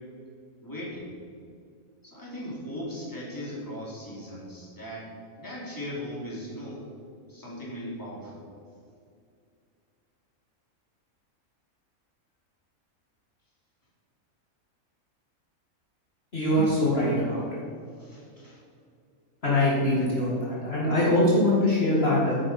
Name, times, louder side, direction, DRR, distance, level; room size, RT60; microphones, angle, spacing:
voice 1, 0.6-1.1 2.0-5.1 5.4-6.9 7.3-8.4 18.0-18.6, equal, 15° left, -5 dB, 2.8 m, -38 dB
voice 2, 16.3-17.6 19.4-22.4, left 1 dB, 45° left, -7 dB, 2.4 m, -23 dB
10.5 x 9.1 x 4.3 m, 2.4 s
omnidirectional pair, 1.5 m